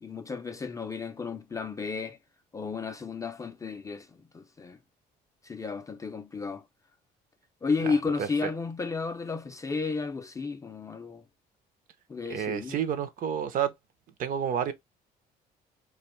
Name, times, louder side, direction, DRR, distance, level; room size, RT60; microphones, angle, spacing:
voice 1, 0.0-2.2 2.5-4.1 4.3-4.8 5.4-6.6 7.6-11.2 12.1-12.8, left 4 dB, 20° left, 0.3 m, -33 dB
voice 2, 7.8-8.5 12.3-13.7 14.2-14.7, right 8 dB, 55° right, 0.5 m, -30 dB
2.4 x 2.2 x 3.0 m
cardioid pair, 110°, 17 cm